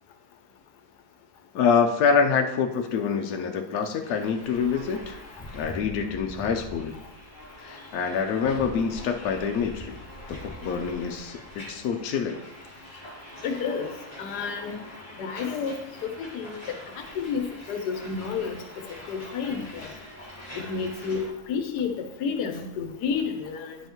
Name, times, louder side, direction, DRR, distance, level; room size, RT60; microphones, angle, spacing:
voice 1, 1.5-5.2 5.5-7.0 7.6-12.4, left 6 dB, 75° left, 4 dB, 1.1 m, -26 dB
sound 1, 4.0-21.3, left 1 dB, 15° left, 1.8 m, -43 dB
voice 2, 13.4-13.9 14.2-14.8 15.2-15.8 16.0-16.6 17.0-19.9 20.7-21.9 22.2-23.8, left 6 dB, 90° left, 6 dB, 1.3 m, -30 dB
10.0 x 5.5 x 3.0 m, 0.90 s
omnidirectional pair, 1.7 m